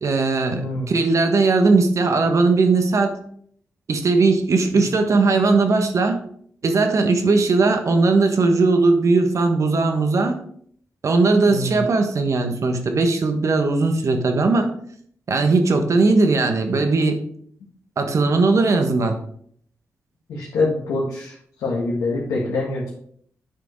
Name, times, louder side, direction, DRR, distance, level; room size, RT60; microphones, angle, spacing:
voice 1, 0.0-0.6 0.9-3.2 3.9-6.2 6.6-10.4 11.0-14.7 15.3-17.2 18.0-19.2, right 3 dB, 60° right, 5 dB, 1.4 m, -18 dB
voice 2, 0.6-0.9 4.7-4.9 11.5-11.9 20.3-22.9, left 2 dB, 90° left, -5 dB, 1.8 m, -25 dB
9.1 x 5.1 x 4.6 m, 0.63 s
supercardioid pair, 45°, 6 cm